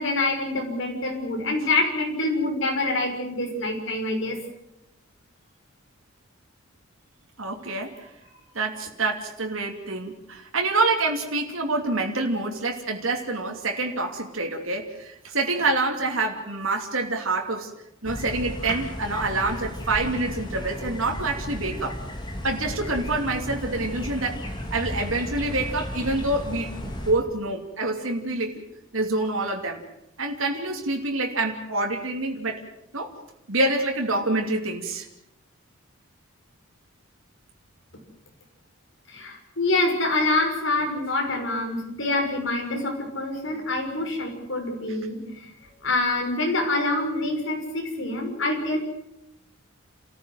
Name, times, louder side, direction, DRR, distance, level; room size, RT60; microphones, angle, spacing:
voice 1, 0.0-4.4 39.1-45.4 45.8-48.8, left 2 dB, 60° left, 2 dB, 5.9 m, -26 dB
voice 2, 7.4-8.1 8.5-17.7 18.0-22.0 22.4-24.4 24.7-28.6 28.9-29.8 30.2-32.6 32.9-33.1 33.5-35.1 41.9-42.0 43.5-43.6, right 2 dB, 70° right, 1 dB, 2.9 m, -27 dB
sound 1, 18.0-27.1, left 1 dB, 20° left, 3.3 m, -34 dB
29.5 x 14.5 x 7.8 m, 0.83 s
head